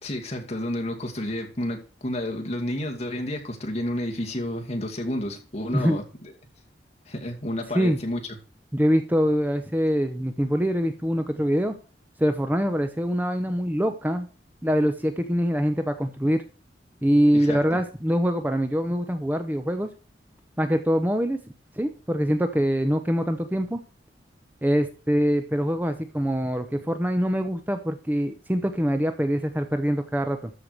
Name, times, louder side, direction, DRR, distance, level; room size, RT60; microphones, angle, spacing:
voice 1, 0.0-6.3 7.1-8.4 17.3-17.6, left 1 dB, 40° left, 2 dB, 2.3 m, -31 dB
voice 2, 8.7-11.7 12.2-14.3 14.6-16.4 17.0-19.9 20.6-21.4 21.8-23.8 24.6-30.5, equal, 10° right, 8 dB, 0.8 m, -24 dB
13.0 x 4.9 x 6.6 m, 0.36 s
head